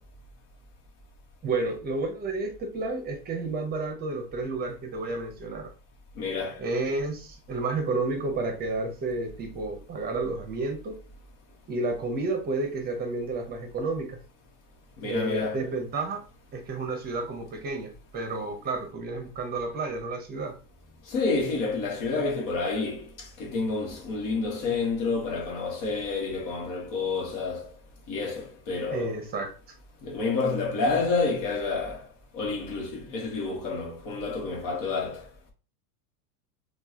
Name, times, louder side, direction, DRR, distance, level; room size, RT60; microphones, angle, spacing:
voice 1, 1.4-5.7 6.6-11.0 11.7-14.2 15.0-16.2 16.5-20.5 28.9-29.5, right 3 dB, 20° right, 0.8 m, -31 dB
voice 2, 6.2-6.6 15.0-15.7 21.1-27.7 28.1-29.1 30.0-32.0 32.3-35.2, left 4 dB, 50° left, 1.5 m, -29 dB
4.4 x 2.5 x 2.8 m
supercardioid pair, 145°, 47 cm